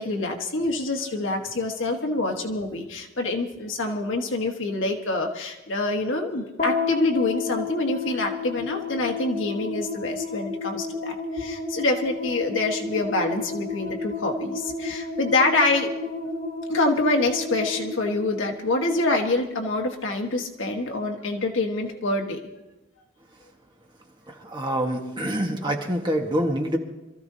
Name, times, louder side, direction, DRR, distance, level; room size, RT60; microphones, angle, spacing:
voice 1, 0.0-15.9 16.7-22.4, left 2 dB, 65° left, 2 dB, 1.5 m, -26 dB
sound 1, 6.6-19.1, left 4 dB, 45° left, 2.5 m, -32 dB
voice 2, 24.4-26.8, equal, 20° right, 1 dB, 1.5 m, -26 dB
26.0 x 14.0 x 2.8 m, 1.0 s
head